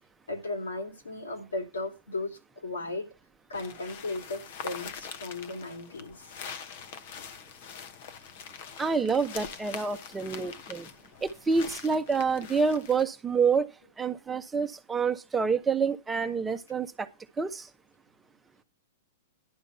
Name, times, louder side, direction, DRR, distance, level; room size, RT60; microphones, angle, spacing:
voice 1, 0.3-3.1 3.5-6.3, left 2 dB, 80° left, 2.8 m, -36 dB
sound 1, 3.5-13.1, left 7 dB, 55° left, 1.0 m, -44 dB
voice 2, 8.8-10.9 11.2-13.7 14.0-17.1 17.4-17.7, right 5 dB, 15° right, 0.8 m, -27 dB
11.0 x 5.2 x 5.6 m
figure-of-eight pair, 105°, 0 cm